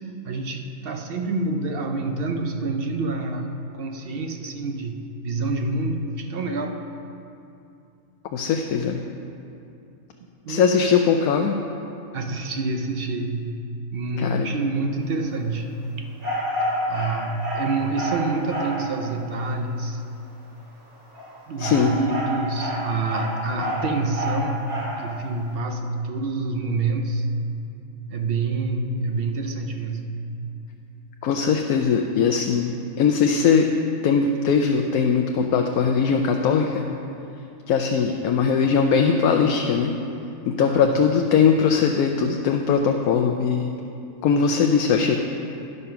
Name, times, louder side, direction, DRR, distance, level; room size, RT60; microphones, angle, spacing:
voice 1, 0.2-6.9 10.2-10.8 12.1-13.6 13.9-15.7 16.0-16.1 16.9-20.0 21.5-24.7 25.0-27.3 28.1-30.2 40.6-41.0, right 3 dB, 60° right, 5 dB, 0.6 m, -27 dB
voice 2, 8.3-9.0 10.5-11.6 14.2-14.5 21.6-21.9 31.2-33.7 34.0-36.8 37.7-39.9 40.5-43.7 44.2-45.2, left 6 dB, 85° left, 3 dB, 1.0 m, -20 dB
sound 1, 16.2-18.9 21.0-25.0, equal, 90° right, 2.5 m, -29 dB
11.0 x 5.5 x 5.7 m, 2.7 s
omnidirectional pair, 1.5 m